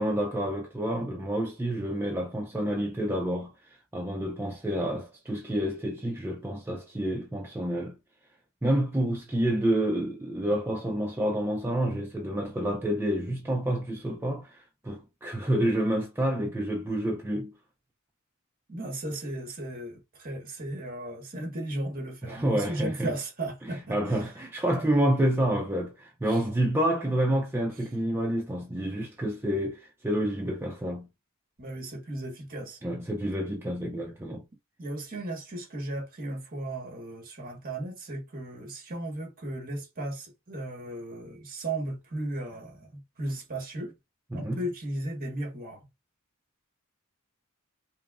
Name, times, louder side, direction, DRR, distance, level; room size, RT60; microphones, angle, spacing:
voice 1, 0.0-8.0 8.6-17.5 22.2-23.1 23.6-31.1 32.8-34.4 44.3-44.6, right 1 dB, 10° right, 0.4 m, -29 dB
voice 2, 18.7-24.0 26.3-26.4 31.6-32.8 34.8-43.9 44.3-45.8, right 1 dB, 40° right, 1.4 m, -35 dB
5.3 x 2.0 x 2.4 m
head